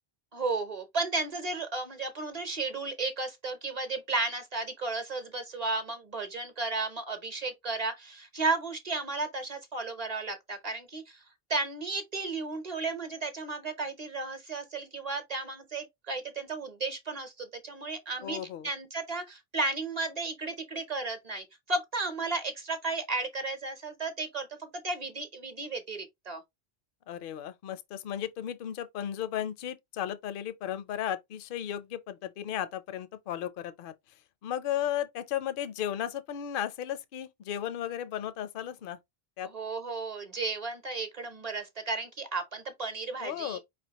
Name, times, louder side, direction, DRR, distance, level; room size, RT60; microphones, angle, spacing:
voice 1, 0.3-11.2 11.5-26.4 39.5-43.6, right 3 dB, 45° right, 0.9 m, -34 dB
voice 2, 18.2-18.7 27.1-33.9 34.4-39.0 39.4-39.5 43.2-43.6, left 10 dB, 65° left, 0.7 m, -35 dB
4.7 x 3.4 x 2.9 m
omnidirectional pair, 1.0 m